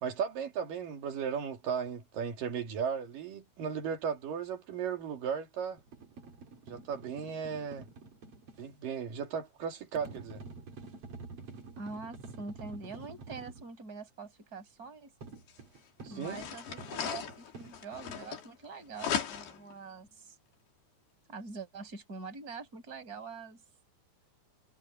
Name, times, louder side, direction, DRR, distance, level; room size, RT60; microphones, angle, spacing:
voice 1, 0.0-5.8 6.7-7.9 8.6-10.4 16.0-16.4, right 7 dB, 60° right, 3.9 m, -36 dB
sound 1, 5.8-8.7 9.9-13.7 15.2-18.2, right 3 dB, 40° right, 3.1 m, -48 dB
voice 2, 11.8-15.1 16.1-20.4 21.3-23.6, right 4 dB, 20° right, 5.6 m, -44 dB
sound 2, 15.5-15.6 16.1-18.7 19.0-19.7, left 8 dB, 70° left, 4.8 m, -37 dB
omnidirectional pair, 4.8 m